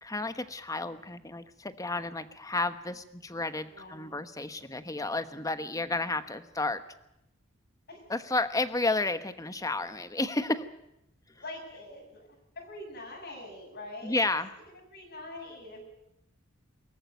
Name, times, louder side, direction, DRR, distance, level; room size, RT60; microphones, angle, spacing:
voice 1, 0.0-6.8 8.1-10.7 14.0-14.5, left 2 dB, 15° left, 11 dB, 1.1 m, -31 dB
voice 2, 3.7-4.2 7.9-8.0 11.3-12.3 12.6-14.2 14.7-15.8, left 2 dB, 55° left, -1 dB, 7.1 m, -44 dB
23.0 x 14.5 x 9.3 m, 0.86 s
head